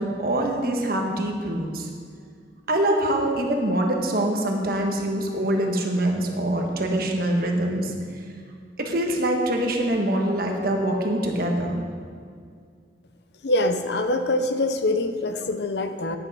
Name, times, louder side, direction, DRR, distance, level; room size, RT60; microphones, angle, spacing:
voice 1, 0.0-1.9 2.7-7.9 8.8-11.7, right 1 dB, 55° right, 2 dB, 1.3 m, -24 dB
voice 2, 13.4-16.2, left 2 dB, 65° left, 8 dB, 0.7 m, -24 dB
11.0 x 10.0 x 4.2 m, 2.1 s
head